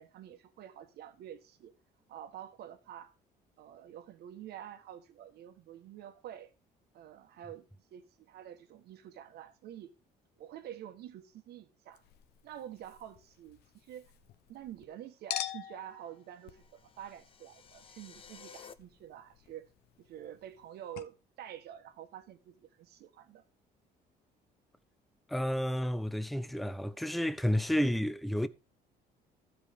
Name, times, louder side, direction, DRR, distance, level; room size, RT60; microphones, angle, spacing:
voice 1, 0.0-1.7 2.1-3.1 3.6-6.5 6.9-7.6 7.9-9.9 10.4-12.0 12.4-14.1 14.5-19.7 20.0-23.4, right 11 dB, 70° right, 1.4 m, -48 dB
Chink clink, 11.9-14.9 15.3-20.7 21.0-21.1, left 11 dB, 75° left, 0.9 m, -46 dB
sound 1, 16.2-18.7, left 6 dB, 35° left, 0.8 m, -55 dB
voice 2, 25.3-28.5, equal, ahead, 0.5 m, -31 dB
12.5 x 5.1 x 4.9 m
cardioid pair, 110°, 17 cm